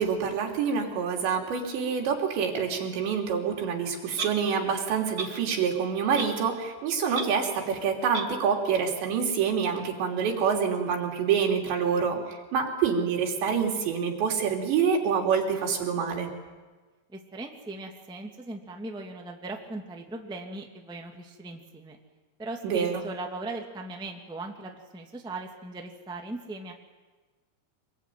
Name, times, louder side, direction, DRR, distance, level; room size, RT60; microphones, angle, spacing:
voice 1, 0.0-16.3 22.6-23.0, right 6 dB, 90° right, 1 dB, 5.4 m, -27 dB
Clock, 4.1-4.3 5.1-5.3 6.2-6.4 6.7-6.8 7.1-7.3 8.1-8.3, right 4 dB, 45° right, 1.2 m, -32 dB
voice 2, 17.1-22.0 22.4-26.7, right 2 dB, ahead, 2 dB, 1.2 m, -38 dB
25.5 x 22.5 x 9.4 m, 1.3 s
omnidirectional pair, 4.9 m